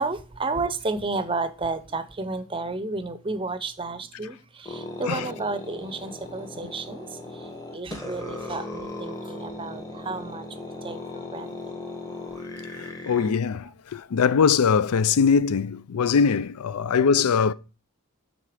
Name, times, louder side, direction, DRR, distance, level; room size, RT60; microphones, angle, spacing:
voice 1, 0.0-12.0, right 3 dB, 25° right, 0.6 m, -32 dB
sound 1, 4.7-13.3, left 2 dB, 15° left, 1.2 m, -37 dB
voice 2, 13.1-17.5, left 6 dB, 80° left, 0.4 m, -21 dB
11.0 x 3.8 x 4.9 m
head